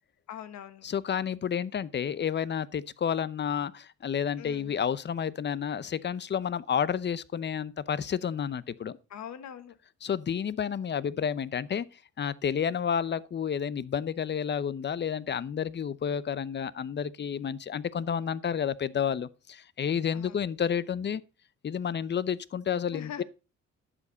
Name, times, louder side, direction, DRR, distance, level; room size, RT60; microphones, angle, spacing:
voice 1, 0.3-0.8 4.4-4.7 9.1-9.7 20.1-20.4 22.9-23.2, left 9 dB, 65° left, 1.3 m, -42 dB
voice 2, 0.8-9.0 10.0-11.9 12.2-21.2 21.6-23.2, left 8 dB, 35° left, 0.7 m, -30 dB
11.0 x 7.5 x 4.0 m
cardioid pair, 90°, 30 cm